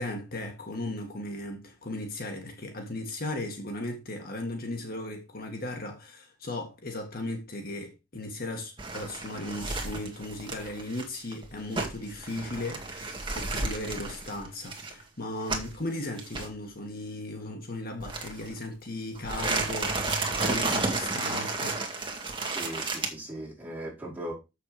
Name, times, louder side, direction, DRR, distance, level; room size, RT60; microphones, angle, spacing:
voice 1, 0.0-21.9, left 1 dB, 50° left, 1.8 m, -37 dB
sound 1, 8.8-15.8 16.2-16.5 18.0-18.7 19.2-23.1, right 3 dB, 25° right, 1.9 m, -32 dB
voice 2, 22.5-24.3, right 1 dB, 10° right, 4.9 m, -38 dB
7.6 x 6.8 x 5.0 m
head